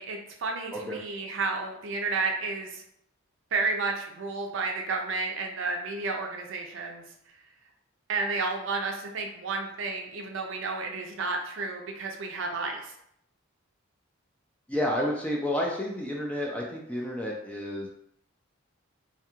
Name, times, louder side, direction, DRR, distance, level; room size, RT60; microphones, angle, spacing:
voice 1, 0.0-2.8 3.5-7.0 8.1-12.9, right 3 dB, 65° right, 2 dB, 0.4 m, -31 dB
voice 2, 14.7-17.9, left 1 dB, 5° left, -2 dB, 0.3 m, -30 dB
2.4 x 2.3 x 2.9 m, 0.74 s
head